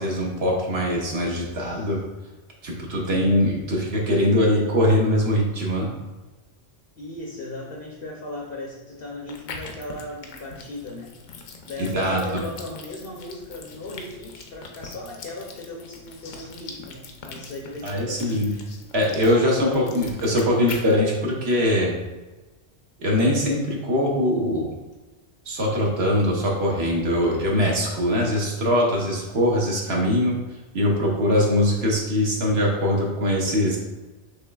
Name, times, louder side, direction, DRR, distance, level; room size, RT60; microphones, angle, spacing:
voice 1, 0.0-2.0 2.6-5.9 11.9-12.4 17.8-18.5 18.9-21.9 23.0-24.7 25.5-30.3 30.7-33.8, left 1 dB, 55° right, -2 dB, 1.2 m, -22 dB
voice 2, 1.6-2.0 7.0-11.1 11.7-18.7 19.4-20.0, left 2 dB, 55° left, -2 dB, 0.8 m, -37 dB
sound 1, 9.3-21.0, left 4 dB, 80° left, 1.0 m, -42 dB
6.5 x 3.1 x 2.3 m, 1.2 s
omnidirectional pair, 1.3 m